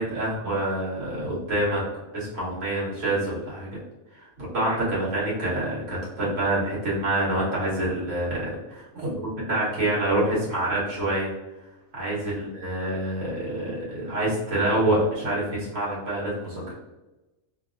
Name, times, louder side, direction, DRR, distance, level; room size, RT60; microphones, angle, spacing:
voice 1, 0.0-1.8 2.1-3.7 4.1-11.3 11.9-16.7, right 1 dB, 60° right, -7 dB, 1.6 m, -27 dB
3.3 x 2.4 x 2.4 m, 1.0 s
omnidirectional pair, 1.5 m